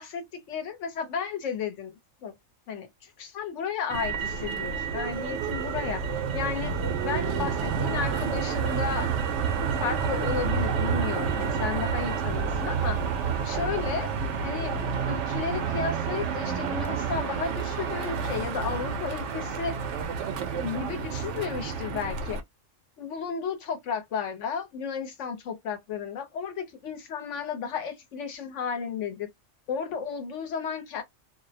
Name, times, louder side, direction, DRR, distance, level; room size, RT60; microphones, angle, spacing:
voice 1, 0.0-1.9 2.2-2.3 2.7-6.8 7.0-9.1 9.8-13.0 13.4-14.1 14.4-19.8 20.6-22.4 23.0-29.3 29.7-31.0, left 6 dB, 70° left, 1.0 m, -33 dB
Motor vehicle (road), 3.9-22.4, right 6 dB, 70° right, 0.8 m, -29 dB
2.5 x 2.0 x 2.7 m
omnidirectional pair, 1.4 m